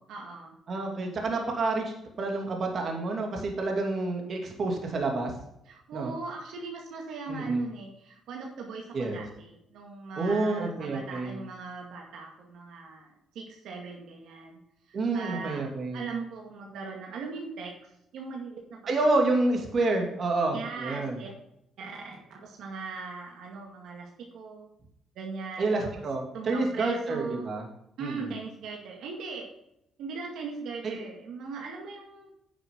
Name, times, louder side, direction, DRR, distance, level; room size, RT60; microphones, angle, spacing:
voice 1, 0.0-0.6 5.7-14.6 14.9-15.6 15.9-18.8 20.5-21.3 21.8-24.7 25.2-26.0 26.3-27.5 28.0-29.5 30.0-32.3, right 4 dB, 80° right, 0 dB, 2.1 m, -39 dB
voice 2, 0.7-5.3 5.9-6.1 7.3-7.7 8.9-9.2 10.2-11.4 14.9-16.0 18.9-21.2 25.6-27.7 28.0-28.4 30.8-31.0, right 2 dB, 50° right, 2 dB, 2.6 m, -28 dB
10.5 x 6.8 x 3.8 m, 0.80 s
cardioid pair, 90°, 0 cm